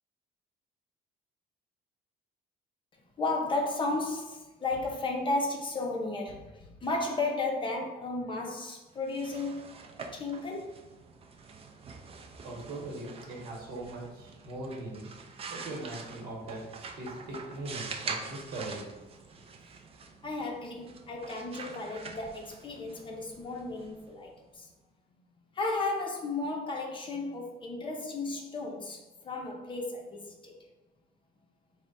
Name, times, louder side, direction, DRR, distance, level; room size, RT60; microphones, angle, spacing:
voice 1, 3.2-9.7 10.1-10.7 15.4-15.6 20.2-24.7 25.5-30.6, left 2 dB, 30° left, 1 dB, 0.6 m, -34 dB
sound 1, 8.9-24.6, right 4 dB, 35° right, 0.4 m, -45 dB
voice 2, 12.4-15.1 15.5-18.8, right 2 dB, 65° right, -2 dB, 1.1 m, -40 dB
3.3 x 2.1 x 3.9 m, 1.1 s
cardioid pair, 110°, 17 cm